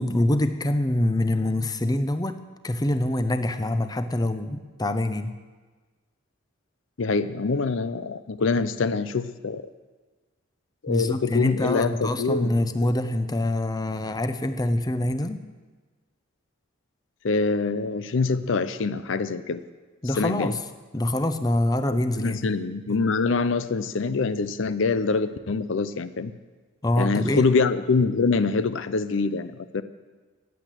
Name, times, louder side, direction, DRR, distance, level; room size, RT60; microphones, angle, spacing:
voice 1, 0.0-2.4 2.6-5.4 10.9-15.4 20.0-20.6 20.9-22.5 26.8-27.4, left 1 dB, 20° left, 10 dB, 0.7 m, -25 dB
voice 2, 7.0-9.6 10.8-12.7 17.2-19.6 20.2-20.5 21.9-26.3 27.0-29.8, left 4 dB, 65° left, 13 dB, 0.5 m, -25 dB
15.0 x 9.9 x 7.6 m, 1.3 s
head